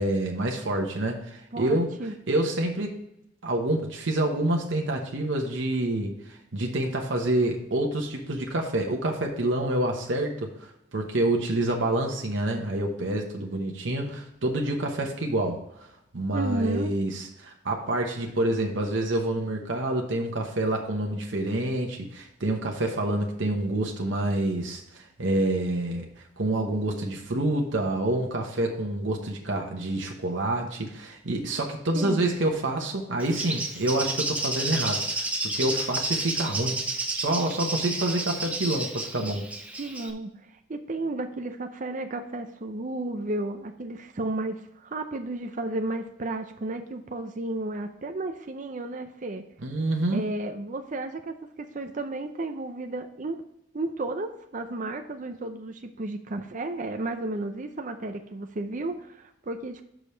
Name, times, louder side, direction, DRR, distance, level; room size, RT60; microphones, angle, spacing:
voice 1, 0.0-1.9 2.3-3.0 3.4-15.6 16.1-26.1 26.4-36.8 37.1-39.5 49.6-50.3, right 1 dB, 70° right, 1 dB, 1.1 m, -27 dB
voice 2, 1.5-2.1 16.3-16.9 31.9-32.3 39.8-40.3 40.7-49.4 50.1-51.4 51.7-53.4 53.7-59.8, right 2 dB, 40° right, 6 dB, 0.6 m, -33 dB
Bird, 33.2-40.1, right 2 dB, 5° right, 0.7 m, -31 dB
6.2 x 5.2 x 5.6 m, 0.80 s
head